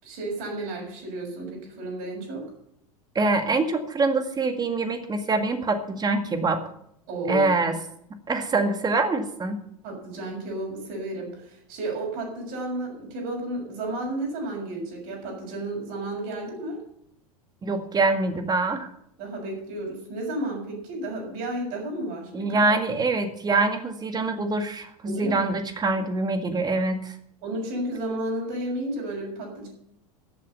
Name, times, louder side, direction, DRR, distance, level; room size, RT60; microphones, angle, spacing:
voice 1, 0.0-2.4 7.1-7.5 9.8-16.8 19.2-22.8 25.0-25.5 25.9-26.0 27.4-29.7, right 1 dB, 50° right, 0 dB, 6.9 m, -32 dB
voice 2, 3.2-6.6 7.3-7.8 8.3-9.6 17.6-18.9 22.3-27.1, right 3 dB, 20° right, 7 dB, 1.9 m, -24 dB
13.5 x 8.5 x 6.9 m, 0.73 s
figure-of-eight pair, 85°, 19 cm